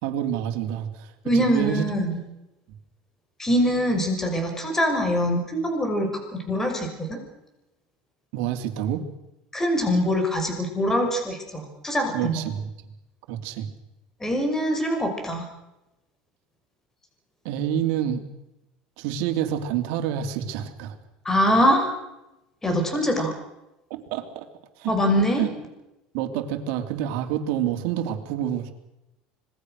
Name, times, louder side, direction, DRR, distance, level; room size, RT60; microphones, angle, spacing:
voice 1, 0.0-1.9 8.3-9.0 12.1-12.6 13.3-13.7 17.4-18.2 19.0-21.0 23.9-24.4 24.8-24.9 25.4-25.5 26.1-28.7, right 10 dB, 75° right, 6 dB, 3.1 m, -28 dB
voice 2, 1.2-2.2 3.4-7.2 9.5-12.5 14.2-15.4 21.2-21.9 22.6-23.3 24.9-25.4, equal, 15° left, 4 dB, 6.1 m, -23 dB
26.0 x 20.5 x 6.6 m, 0.93 s
supercardioid pair, 125°, 3 cm